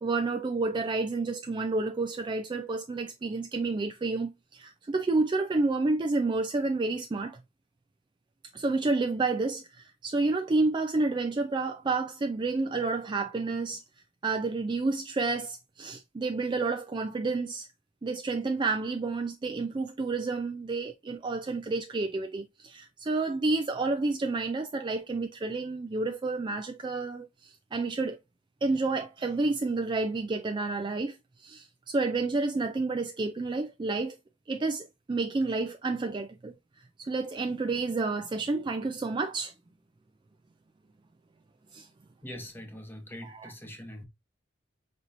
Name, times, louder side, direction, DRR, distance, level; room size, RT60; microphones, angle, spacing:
voice 1, 0.0-7.4 8.5-13.8 14.2-17.7 18.0-28.2 28.6-34.2 34.5-36.5 37.0-39.5 41.7-41.9 43.2-43.5, right 3 dB, 25° right, 0.3 m, -30 dB
voice 2, 42.2-44.0, left 1 dB, 10° left, 1.0 m, -43 dB
5.3 x 3.0 x 2.5 m
head